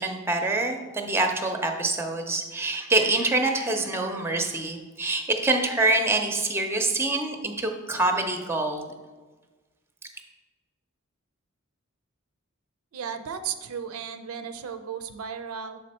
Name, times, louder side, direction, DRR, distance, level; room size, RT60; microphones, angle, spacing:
voice 1, 0.0-8.9, right 2 dB, 10° right, 4 dB, 0.5 m, -25 dB
voice 2, 12.9-15.8, right 7 dB, 80° right, 9 dB, 0.5 m, -35 dB
6.7 x 4.2 x 4.2 m, 1.3 s
head